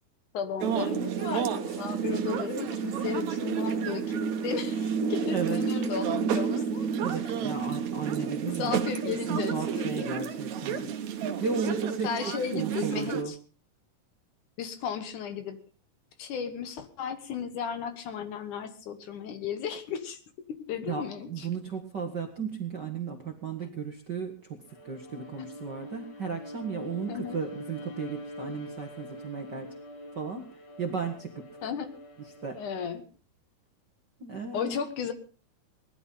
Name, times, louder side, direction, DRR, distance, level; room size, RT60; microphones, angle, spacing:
voice 1, 0.3-6.9 8.4-10.1 12.0-13.4 14.6-15.6 16.2-21.5 27.1-27.4 31.6-32.0 32.5-33.0 34.5-35.1, left 7 dB, 65° left, 10 dB, 2.7 m, -35 dB
sound 1, 0.6-13.2, right 7 dB, 60° right, 2.3 m, -30 dB
voice 2, 5.3-5.7 7.0-8.8 9.0-10.9 11.2-13.3 20.8-29.7 30.1-30.5 30.8-31.5 32.4-32.6 34.2-34.8, right 5 dB, 45° right, 4 dB, 1.5 m, -35 dB
Bowed string instrument, 24.7-33.1, left 1 dB, 50° left, 3.9 m, -44 dB
19.5 x 11.5 x 5.5 m, 0.37 s
omnidirectional pair, 4.1 m